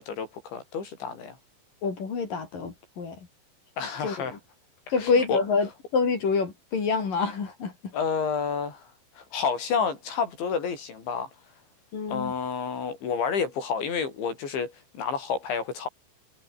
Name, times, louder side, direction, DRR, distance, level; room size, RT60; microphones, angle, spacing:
voice 1, 0.0-1.4 3.8-4.4 5.0-5.4 7.9-11.3 12.1-15.9, left 6 dB, 65° left, 8.0 m, -30 dB
voice 2, 1.8-3.3 4.0-4.4 4.9-7.9 11.9-12.3, left 4 dB, 45° left, 5.4 m, -27 dB
omnidirectional pair, 5.7 m